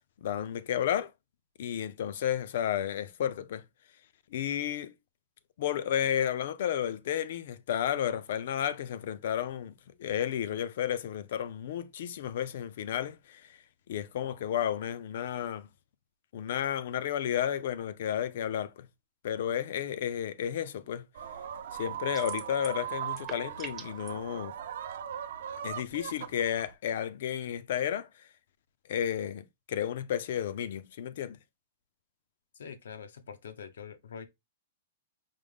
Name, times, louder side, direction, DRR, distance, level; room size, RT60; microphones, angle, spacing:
voice 1, 0.2-1.1 1.6-3.6 4.3-4.9 5.6-9.7 10.0-13.4 13.9-15.7 16.3-18.7 19.2-21.0 21.7-24.5 25.6-28.1 28.9-31.4, left 10 dB, 55° left, 0.4 m, -32 dB
sound 1, 21.1-26.7, right 9 dB, 65° right, 0.5 m, -39 dB
sound 2, 22.1-22.8 23.1-24.1, right 6 dB, 15° right, 0.6 m, -43 dB
voice 2, 32.5-34.3, left 7 dB, 90° left, 0.7 m, -44 dB
5.0 x 2.0 x 3.4 m
hypercardioid pair, 170°, 0 cm